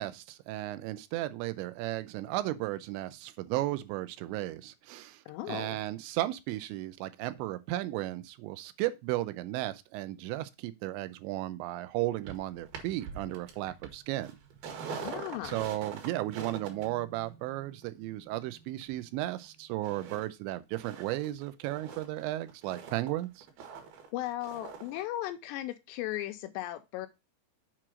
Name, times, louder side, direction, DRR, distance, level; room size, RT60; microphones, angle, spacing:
voice 1, 0.0-5.2 5.5-14.4 14.9-15.1 15.4-23.5, right 16 dB, 85° right, 2.9 m, -35 dB
voice 2, 5.3-5.8 14.9-15.6 24.1-27.1, left 15 dB, 80° left, 2.5 m, -36 dB
sound 1, 12.2-19.5 19.8-20.3 20.5-25.0 25.3-25.4, right 6 dB, 65° right, 3.0 m, -45 dB
7.4 x 4.6 x 4.9 m
omnidirectional pair, 5.3 m